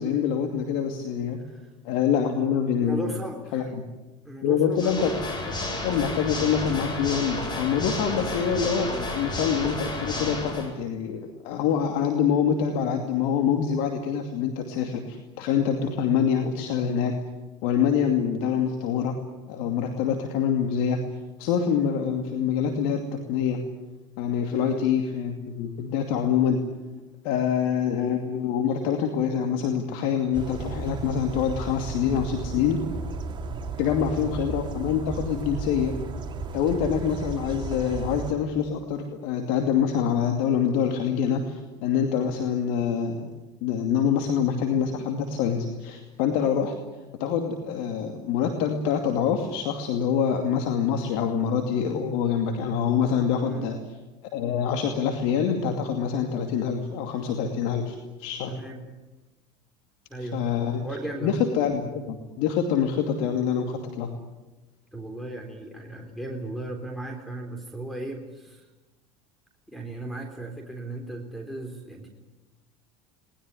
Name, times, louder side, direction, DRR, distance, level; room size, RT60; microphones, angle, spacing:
voice 1, 0.0-1.4 1.8-3.0 3.5-3.6 4.4-5.1 5.7-17.1 17.6-19.1 19.5-21.0 21.4-23.0 23.3-23.6 24.2-26.6 27.2-32.8 33.8-35.9 36.5-43.3 43.6-46.7 47.2-53.8 54.3-58.5 60.3-60.9 61.2-64.1, left 7 dB, 70° left, 5 dB, 2.6 m, -25 dB
voice 2, 2.8-3.7 4.2-5.1 24.5-24.9 33.8-34.1 53.4-53.7 58.5-58.8 60.1-60.4 60.8-61.4 64.9-68.7 69.7-72.1, right 2 dB, ahead, 3 dB, 3.8 m, -36 dB
Water / Mechanisms, 4.7-10.7, left 2 dB, 30° left, 7.6 m, -31 dB
sound 1, 30.3-38.3, right 4 dB, 30° right, 3.0 m, -34 dB
21.5 x 20.5 x 9.9 m, 1.1 s
hypercardioid pair, 90°, 14 cm